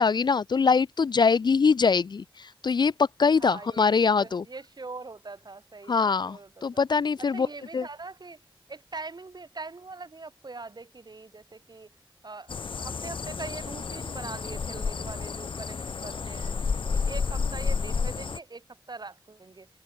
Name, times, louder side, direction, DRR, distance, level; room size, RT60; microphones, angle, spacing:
voice 1, 0.0-4.4 5.9-7.5 7.7-7.9, left 5 dB, 55° left, 0.4 m, -23 dB
voice 2, 3.4-6.8 7.2-8.4 8.7-11.9 12.2-16.5 16.9-19.7, right 3 dB, 50° right, 5.2 m, -42 dB
sound 1, 12.5-18.4, left 5 dB, 75° left, 1.0 m, -31 dB
wide cardioid pair, 70°, 9 cm